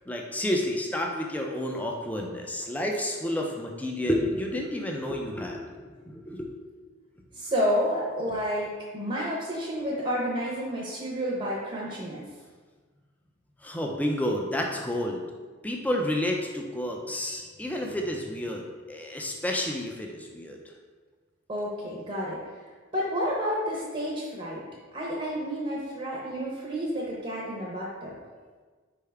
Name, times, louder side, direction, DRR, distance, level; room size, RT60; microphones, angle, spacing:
voice 1, 0.1-5.8 6.0-6.5 13.6-15.2 15.6-20.6, left 1 dB, 10° left, 0 dB, 0.4 m, -30 dB
voice 2, 7.3-12.3 21.5-22.4 22.9-24.6 24.9-28.1, equal, 30° right, -4 dB, 0.7 m, -30 dB
4.6 x 3.4 x 3.3 m, 1.4 s
head